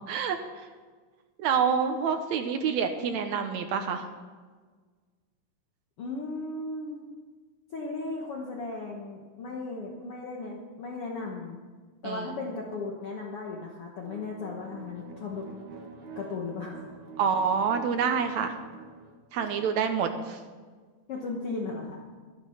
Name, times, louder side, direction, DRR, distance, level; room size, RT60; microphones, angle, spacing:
voice 1, 0.1-0.7 1.4-4.1 12.0-12.3 17.2-18.6 19.3-20.4, right 6 dB, 80° right, 6 dB, 1.7 m, -27 dB
voice 2, 6.0-7.0 7.7-11.6 12.0-15.5 16.1-16.8 21.1-22.0, left 3 dB, 60° left, -1 dB, 1.6 m, -36 dB
sound 1, 14.0-19.7, right 4 dB, 60° right, 2.5 m, -46 dB
11.5 x 11.0 x 5.7 m, 1.5 s
omnidirectional pair, 4.0 m